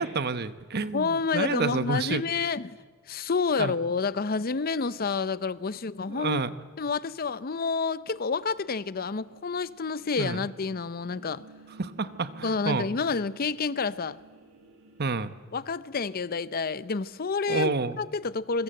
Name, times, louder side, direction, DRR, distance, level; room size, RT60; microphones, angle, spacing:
voice 1, 0.0-2.2 3.6-3.8 6.1-6.5 10.2-10.4 11.8-12.9 15.0-15.3 17.5-18.0, right 4 dB, 50° right, 1.0 m, -29 dB
voice 2, 0.9-2.8 3.1-6.4 6.8-11.5 12.4-14.2 15.5-18.6, left 4 dB, 45° left, 0.6 m, -29 dB
sound 1, 8.1-15.3, right 3 dB, 70° right, 5.0 m, -54 dB
26.0 x 23.5 x 7.7 m
head